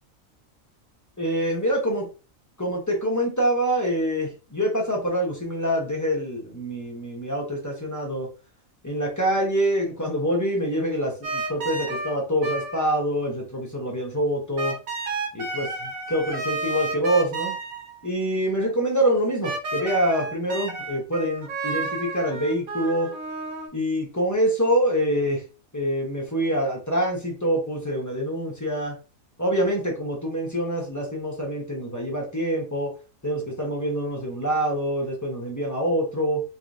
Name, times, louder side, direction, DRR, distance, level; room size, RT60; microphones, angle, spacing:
voice 1, 1.2-2.1 2.6-8.3 8.8-14.8 15.3-17.6 18.0-23.1 23.7-25.4 25.7-29.0 29.4-32.9 33.2-36.4, equal, 15° left, -1 dB, 0.8 m, -25 dB
sound 1, 11.2-12.2 12.4-12.9 14.6-18.0 19.4-23.7, right 3 dB, 90° right, 1.4 m, -31 dB
3.2 x 3.0 x 2.6 m, 0.33 s
omnidirectional pair, 1.4 m